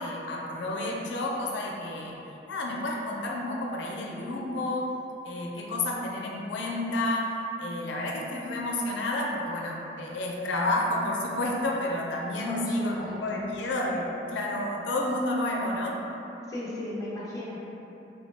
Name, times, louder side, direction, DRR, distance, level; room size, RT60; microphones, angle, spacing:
voice 1, 0.0-2.1 2.5-4.9 5.2-7.3 7.6-16.0, left 1 dB, 90° left, -1 dB, 0.4 m, -30 dB
voice 2, 12.5-13.4 16.5-17.6, left 1 dB, 20° left, -7 dB, 0.4 m, -36 dB
3.2 x 2.0 x 3.1 m, 3.0 s
head